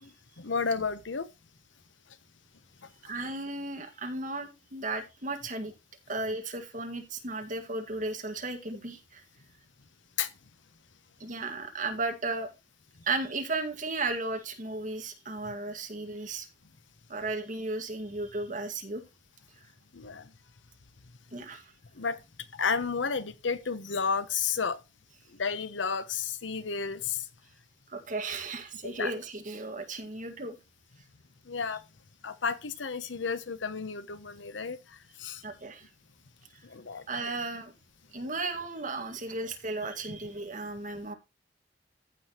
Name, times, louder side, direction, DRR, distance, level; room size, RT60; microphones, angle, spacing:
voice 1, 0.4-1.3 10.2-10.3 19.9-20.3 22.0-22.2 22.5-24.8 25.4-27.2 28.8-29.1 31.5-31.8 32.2-35.4 36.6-37.0, left 5 dB, 85° left, 0.9 m, -32 dB
voice 2, 3.1-5.7 6.1-9.2 11.2-12.5 13.0-16.5 17.1-19.0 21.3-21.6 27.9-30.6 35.4-35.9 37.1-37.7 38.1-41.1, right 3 dB, 45° right, 1.9 m, -35 dB
14.5 x 6.0 x 3.0 m
head